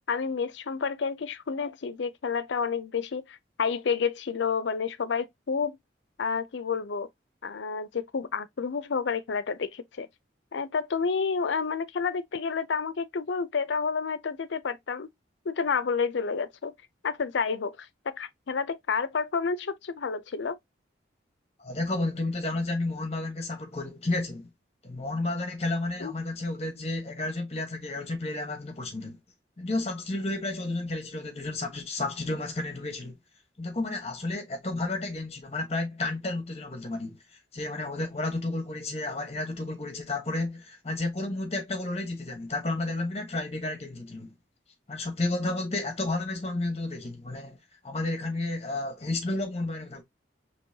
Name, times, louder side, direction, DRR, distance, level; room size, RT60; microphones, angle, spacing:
voice 1, 0.0-5.8 6.2-7.1 7.4-10.1 10.5-15.1 15.5-16.7 17.0-20.6 26.0-26.1, left 5 dB, 75° left, 0.5 m, -30 dB
voice 2, 21.6-24.5 24.8-29.2 29.6-33.1 33.6-37.2 37.5-44.3 44.9-47.6 47.8-50.0, left 2 dB, 35° left, 1.0 m, -31 dB
5.4 x 3.0 x 2.7 m
head